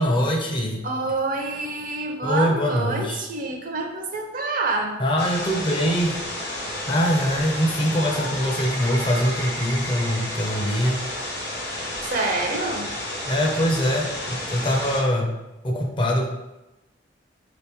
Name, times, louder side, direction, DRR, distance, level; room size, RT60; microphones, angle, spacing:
voice 1, 0.0-0.9 2.2-3.2 5.0-6.2 6.9-11.0 13.2-15.3 15.6-16.3, equal, 25° left, 0 dB, 0.6 m, -23 dB
voice 2, 0.8-5.0 12.0-12.9, right 3 dB, 50° right, 2 dB, 0.6 m, -27 dB
sound 1, 5.2-15.0, left 1 dB, 65° left, 1.1 m, -31 dB
4.6 x 2.9 x 3.5 m, 0.98 s
head